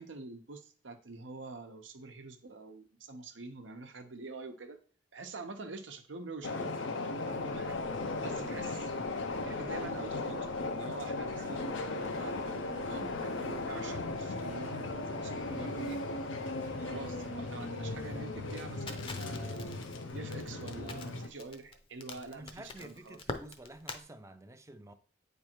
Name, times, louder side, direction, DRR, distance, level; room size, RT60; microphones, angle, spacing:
voice 1, 0.0-4.8 5.1-6.9 7.2-7.8 8.2-8.9 9.4-16.0 16.8-19.7 20.1-23.2, right 3 dB, 80° right, 0.9 m, -46 dB
sound 1, 6.4-21.3, left 2 dB, 85° left, 0.7 m, -37 dB
sound 2, 7.3-18.9, right 2 dB, 50° right, 1.0 m, -57 dB
Crackle, 18.9-24.0, left 3 dB, 30° left, 0.7 m, -44 dB
voice 2, 22.2-24.9, right 1 dB, 15° right, 0.5 m, -50 dB
8.7 x 3.4 x 4.5 m
head